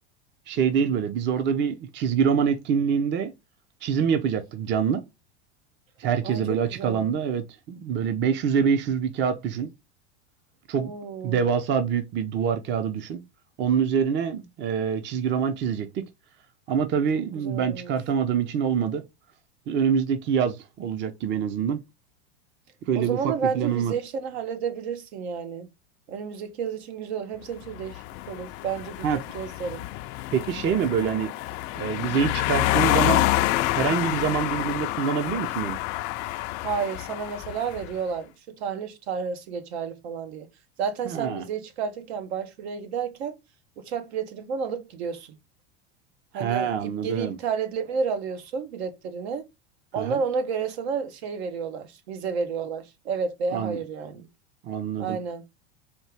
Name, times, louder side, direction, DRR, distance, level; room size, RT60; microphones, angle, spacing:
voice 1, 0.5-3.3 3.8-5.0 6.0-9.7 10.7-10.9 11.2-13.2 13.6-16.0 16.7-19.0 19.7-21.8 22.8-23.9 29.0-29.2 30.3-31.3 31.8-33.3 33.7-35.8 41.0-41.4 46.3-47.4 50.0-50.2 53.5-53.8 54.6-55.2, right 7 dB, 35° right, 0.7 m, -25 dB
voice 2, 6.2-7.1 10.8-11.4 17.1-17.9 22.9-25.7 26.1-29.1 29.3-29.8 36.6-40.5 40.8-43.3 43.8-45.4 46.3-49.5 49.9-54.3 55.0-55.4, right 6 dB, 75° right, 1.0 m, -31 dB
sound 1, 27.6-37.9, left 16 dB, 50° left, 0.4 m, -28 dB
4.3 x 2.4 x 3.3 m
supercardioid pair, 110°, 33 cm